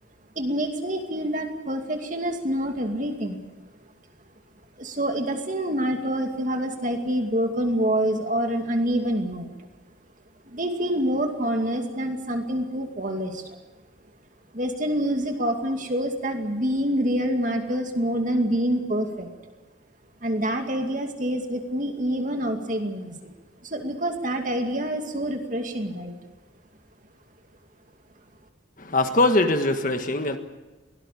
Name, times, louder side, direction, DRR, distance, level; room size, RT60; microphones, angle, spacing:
voice 1, 0.4-3.4 4.8-9.5 10.5-13.6 14.5-19.3 20.2-23.3 23.6-26.2, right 1 dB, 40° right, 4 dB, 2.4 m, -26 dB
voice 2, 28.8-30.4, left 2 dB, 45° left, 7 dB, 1.6 m, -21 dB
23.0 x 18.5 x 8.6 m, 1.2 s
head